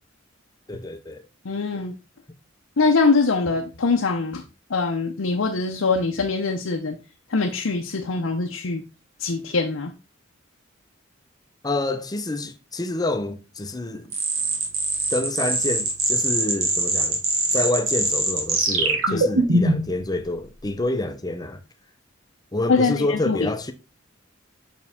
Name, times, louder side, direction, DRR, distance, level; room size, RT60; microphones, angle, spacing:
voice 1, 0.7-1.2 11.6-14.1 15.1-17.2 17.5-21.6 22.5-23.7, left 2 dB, 20° left, 0.6 m, -27 dB
voice 2, 1.4-1.9 2.8-4.4 4.7-7.0 7.3-8.8 9.2-9.9 19.1-19.3 22.7-23.5, left 4 dB, 85° left, 0.7 m, -23 dB
sound 1, 14.1-20.0, right 3 dB, 90° right, 1.6 m, -22 dB
6.0 x 4.8 x 3.5 m
head